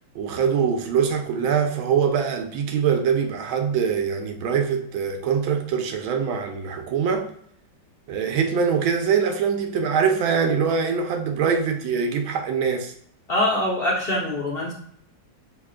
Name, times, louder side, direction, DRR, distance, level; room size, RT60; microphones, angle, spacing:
voice 1, 0.1-7.3 8.1-12.9, right 6 dB, 80° right, 1.5 m, -23 dB
voice 2, 13.3-14.7, left 1 dB, 55° left, 0.6 m, -23 dB
5.8 x 3.5 x 2.4 m
omnidirectional pair, 2.2 m